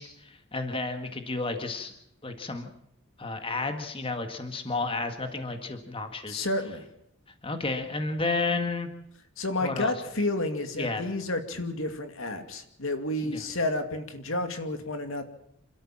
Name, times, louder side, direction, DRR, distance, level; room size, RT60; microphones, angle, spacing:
voice 1, 0.0-1.9 2.2-2.7 3.2-6.5 7.4-8.9 9.6-9.9 10.8-11.1 13.2-13.4, left 3 dB, 25° left, 6 dB, 1.8 m, -32 dB
voice 2, 6.3-6.8 9.4-15.2, left 2 dB, 75° left, 7 dB, 2.5 m, -30 dB
27.5 x 13.0 x 7.4 m, 0.76 s
head